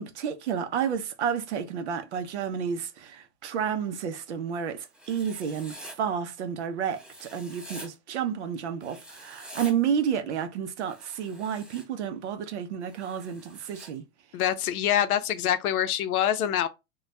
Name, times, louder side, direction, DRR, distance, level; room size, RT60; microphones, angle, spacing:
voice 1, 0.0-14.0, right 8 dB, 55° right, 0.5 m, -31 dB
Writing, 4.9-6.0 6.9-7.9 8.8-9.7 10.8-11.8 12.9-13.9, equal, 5° right, 0.5 m, -46 dB
voice 2, 14.3-16.7, left 10 dB, 80° left, 0.6 m, -25 dB
2.2 x 2.2 x 3.9 m
supercardioid pair, 180°, 43 cm